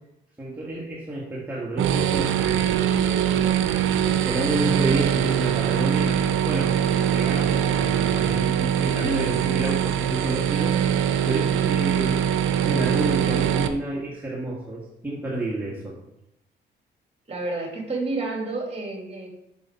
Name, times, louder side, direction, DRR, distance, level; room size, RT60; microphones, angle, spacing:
voice 1, 0.4-2.8 4.1-6.2 6.4-6.8 7.1-10.8 11.2-16.0, right 1 dB, 10° right, -5 dB, 1.6 m, -30 dB
sound 1, 1.8-13.7, right 9 dB, 90° right, 0.6 m, -22 dB
voice 2, 17.3-19.3, right 2 dB, 30° right, 1 dB, 2.5 m, -30 dB
7.6 x 5.8 x 4.4 m, 0.84 s
cardioid pair, 90°, 20 cm